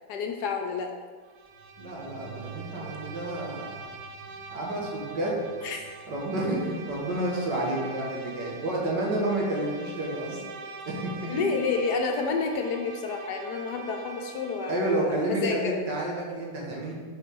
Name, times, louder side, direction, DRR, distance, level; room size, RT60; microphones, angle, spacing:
voice 1, 0.1-0.9 5.6-5.9 11.2-15.8, left 4 dB, 70° left, 4 dB, 1.1 m, -29 dB
Bowed string instrument, 1.2-15.1, right 3 dB, 85° right, 1.4 m, -44 dB
sound 1, 1.5-9.9, right 8 dB, 40° right, 1.6 m, -50 dB
voice 2, 1.8-3.9 4.5-5.4 6.1-10.4 10.9-11.4 14.7-16.9, right 1 dB, 70° right, -3 dB, 2.0 m, -30 dB
5.6 x 4.7 x 5.3 m, 1.5 s
omnidirectional pair, 2.0 m